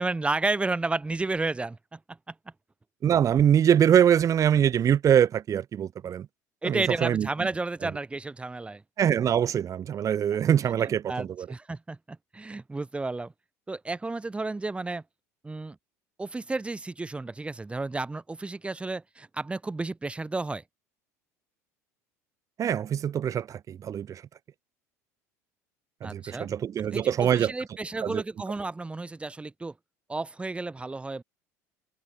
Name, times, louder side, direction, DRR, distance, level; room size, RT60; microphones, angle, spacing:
voice 1, 0.0-2.0 2.3-2.4 6.6-8.8 11.1-13.3 13.7-15.0 15.4-15.8 16.2-20.6 26.0-26.5 26.9-29.7 30.1-31.2, right 3 dB, 15° right, 1.0 m, -32 dB
voice 2, 3.0-6.3 6.6-7.3 7.8-7.9 9.0-11.5 22.6-24.2 26.0-27.5 28.0-28.2, right 9 dB, 40° right, 1.3 m, -23 dB
hypercardioid pair, 75°, 8 cm